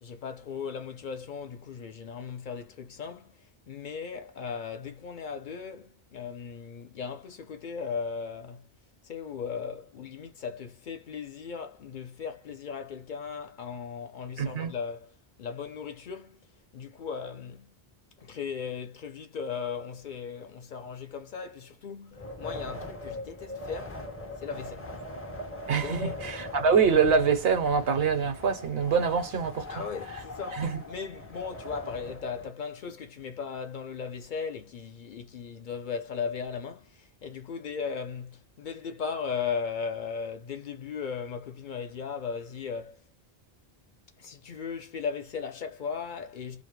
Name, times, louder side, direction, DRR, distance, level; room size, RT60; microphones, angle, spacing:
voice 1, 0.0-8.7 9.0-15.1 15.4-17.8 18.2-24.1 24.4-24.9 25.8-26.2 29.7-43.0 44.2-46.6, left 6 dB, 60° left, 0.6 m, -37 dB
voice 2, 14.4-14.7 25.7-29.7 30.5-30.8, right 6 dB, 75° right, 0.9 m, -25 dB
Wind, 22.1-32.5, left 2 dB, 20° left, 0.4 m, -41 dB
2.2 x 2.0 x 3.0 m
omnidirectional pair, 1.0 m